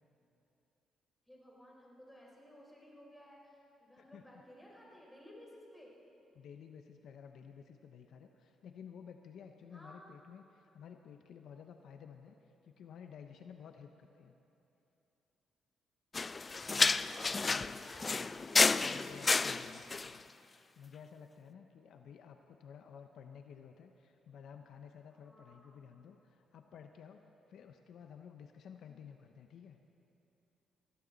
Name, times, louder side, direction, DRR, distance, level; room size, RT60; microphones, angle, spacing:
voice 1, 1.3-5.9 9.7-10.1 16.1-18.7 25.1-25.9, equal, 5° left, -3 dB, 4.5 m, -57 dB
voice 2, 6.3-12.3 12.6-14.3 17.5-17.9 18.8-20.3 20.8-27.2 27.5-29.8, left 7 dB, 70° left, 5 dB, 0.8 m, -53 dB
sound 1, 16.1-20.2, left 4 dB, 30° left, 0.3 m, -31 dB
20.5 x 15.5 x 4.0 m, 2.9 s
cardioid pair, 90°, 0 cm